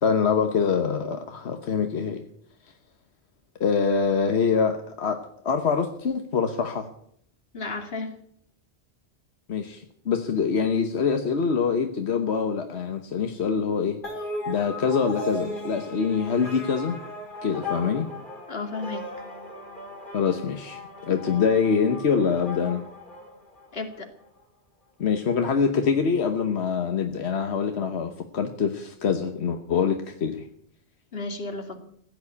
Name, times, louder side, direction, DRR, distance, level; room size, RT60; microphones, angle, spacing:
voice 1, 0.0-2.2 3.6-5.2 5.4-6.9 9.5-14.0 14.5-17.0 17.4-18.1 20.1-22.8 25.0-30.5, left 6 dB, 85° left, 6 dB, 1.3 m, -25 dB
voice 2, 7.5-8.2 18.5-19.1 23.7-24.1 31.1-31.8, left 3 dB, 65° left, 5 dB, 2.4 m, -33 dB
sound 1, 14.0-23.8, left 1 dB, 50° left, 3.5 m, -37 dB
15.5 x 9.4 x 8.3 m, 0.67 s
omnidirectional pair, 1.1 m